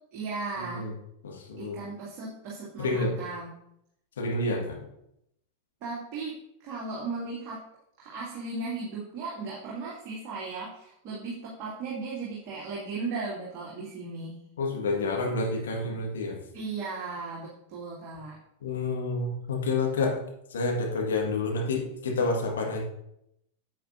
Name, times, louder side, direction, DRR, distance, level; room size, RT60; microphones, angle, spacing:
voice 1, 0.1-0.9 1.6-3.5 5.8-7.6 8.0-14.4 16.5-18.3, right 3 dB, 40° right, -6 dB, 2.3 m, -36 dB
voice 2, 1.2-1.8 2.8-3.2 4.2-4.8 14.6-16.4 18.6-20.2 20.5-22.8, left 3 dB, 65° left, 1 dB, 1.7 m, -29 dB
9.1 x 8.0 x 2.7 m, 0.78 s
figure-of-eight pair, 90°, 0 cm